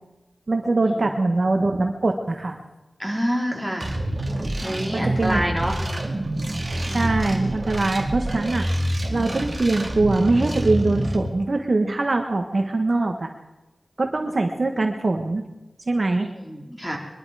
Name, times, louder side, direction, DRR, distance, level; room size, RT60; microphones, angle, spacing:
voice 1, 0.5-2.6 4.9-5.4 6.9-8.7 9.1-13.3 14.0-15.4 15.9-16.3, right 2 dB, 50° right, 4 dB, 1.2 m, -22 dB
voice 2, 3.0-3.9 4.6-5.7 6.9-7.1 7.8-7.9 16.2-17.0, equal, ahead, 0 dB, 3.3 m, -27 dB
sound 1, 3.8-11.2, right 1 dB, 30° right, 2.0 m, -27 dB
22.5 x 11.5 x 4.9 m, 1.1 s
wide cardioid pair, 95°, 0 cm